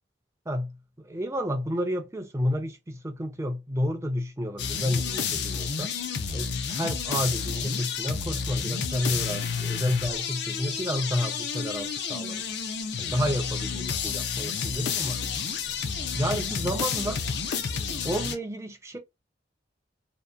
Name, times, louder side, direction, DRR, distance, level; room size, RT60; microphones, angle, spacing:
voice 1, 0.5-5.9 6.3-12.4 13.0-15.2 16.1-17.2 18.0-19.0, equal, 15° right, 0.4 m, -30 dB
sound 1, 4.6-18.4, left 6 dB, 70° left, 0.5 m, -30 dB
2.7 x 2.1 x 2.3 m
head